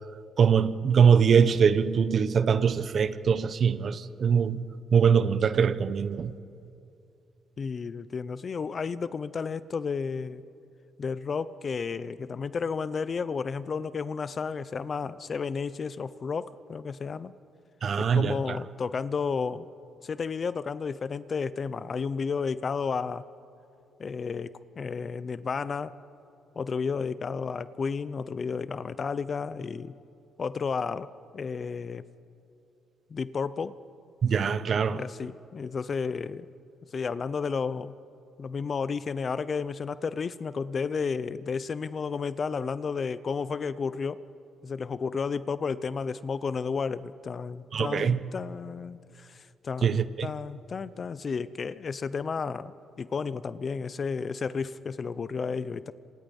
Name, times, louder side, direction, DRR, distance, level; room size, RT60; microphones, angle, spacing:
voice 1, 0.4-4.6 4.9-6.3 17.8-18.6 34.2-35.0 47.7-48.2 49.8-50.3, right 6 dB, 50° right, 1.0 m, -23 dB
voice 2, 7.6-10.4 11.0-17.3 18.0-19.7 20.0-23.3 24.0-26.0 26.6-29.9 30.4-32.0 33.1-33.8 34.9-36.5 36.9-38.0 38.4-44.2 44.6-55.9, left 5 dB, 45° left, 0.8 m, -32 dB
27.0 x 27.0 x 5.5 m
cardioid pair, 90°, 0 cm